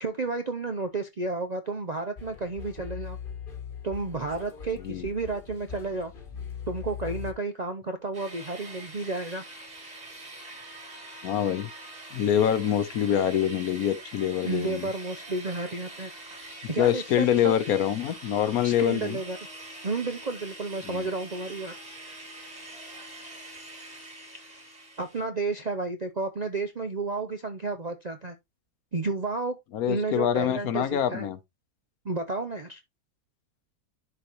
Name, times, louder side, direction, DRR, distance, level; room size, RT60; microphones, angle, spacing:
voice 1, 0.0-3.2 3.8-6.1 6.7-9.4 14.4-16.1 16.7-17.5 18.6-19.4 19.8-21.7 25.0-28.4 28.9-29.6 29.9-31.3 32.0-32.8, right 3 dB, 60° right, 0.4 m, -31 dB
sound 1, 2.2-7.3, left 7 dB, 35° left, 1.2 m, -40 dB
sound 2, 8.1-25.2, right 2 dB, 25° right, 2.4 m, -44 dB
voice 2, 11.2-11.7 12.1-14.9 16.6-19.2 20.9-21.1 29.7-31.4, left 10 dB, 70° left, 1.1 m, -25 dB
11.0 x 4.0 x 2.9 m
omnidirectional pair, 1.7 m